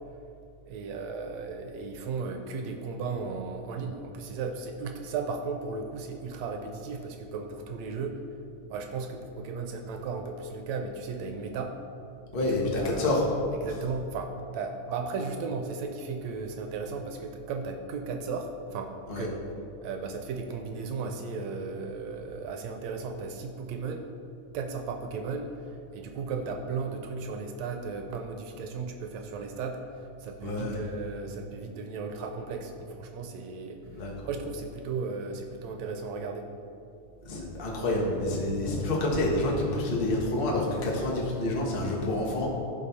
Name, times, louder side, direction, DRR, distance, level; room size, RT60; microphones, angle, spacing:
voice 1, 0.7-8.2 8.7-11.8 12.4-13.2 13.5-19.4 19.8-24.1 24.5-36.5, right 4 dB, 75° right, 5 dB, 1.8 m, -35 dB
voice 2, 12.3-13.2 19.1-19.3 30.4-30.8 34.0-34.3 37.2-42.5, left 2 dB, 40° left, -2 dB, 0.8 m, -28 dB
15.5 x 5.2 x 4.2 m, 2.6 s
omnidirectional pair, 3.5 m